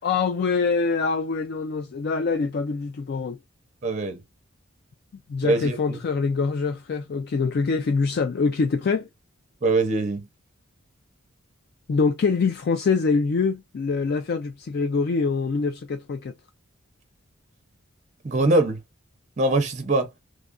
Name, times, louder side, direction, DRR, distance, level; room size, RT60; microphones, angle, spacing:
voice 1, 0.0-3.4 5.3-9.1 11.9-16.3, left 4 dB, 50° left, 0.3 m, -24 dB
voice 2, 3.8-4.2 5.4-6.0 9.6-10.3 18.2-18.8 19.4-20.1, right 2 dB, 35° right, 0.6 m, -22 dB
3.1 x 2.3 x 3.6 m
head